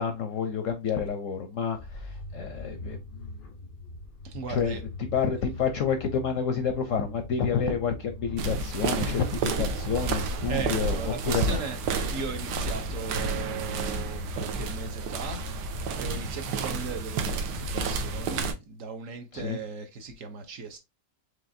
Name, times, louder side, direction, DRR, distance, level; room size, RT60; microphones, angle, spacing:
voice 1, 0.0-3.4 4.5-4.8 5.1-11.6 19.3-19.6, left 6 dB, 65° left, 0.8 m, -29 dB
sound 1, 1.7-18.4, left 2 dB, 90° left, 0.4 m, -42 dB
voice 2, 4.2-4.8 10.5-11.8 12.1-20.8, right 5 dB, 60° right, 1.0 m, -38 dB
sound 2, 8.4-18.5, right 4 dB, 75° right, 1.2 m, -31 dB
4.9 x 3.2 x 2.6 m
omnidirectional pair, 1.9 m